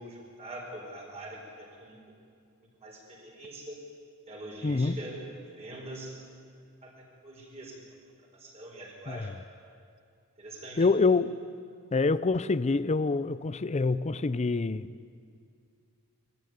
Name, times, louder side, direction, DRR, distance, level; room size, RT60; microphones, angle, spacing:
voice 1, 0.0-2.0 2.8-3.8 4.3-5.3 5.6-6.4 6.8-7.8 8.2-9.3 10.4-10.9, right 1 dB, 30° right, 4.7 m, -44 dB
voice 2, 4.6-5.0 9.1-9.3 10.8-11.4 11.9-14.9, left 3 dB, 30° left, 0.5 m, -26 dB
22.0 x 14.5 x 9.4 m
head